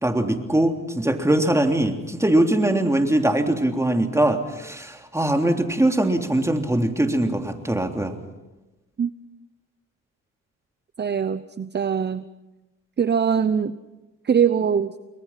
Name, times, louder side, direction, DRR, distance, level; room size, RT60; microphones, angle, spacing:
voice 1, 0.0-8.2, right 1 dB, 10° right, 4 dB, 3.3 m, -21 dB
voice 2, 11.0-12.3 13.0-13.7 14.2-14.9, right 7 dB, 35° right, 13 dB, 0.8 m, -22 dB
29.5 x 22.0 x 5.9 m, 1.1 s
cardioid pair, 80°, 31 cm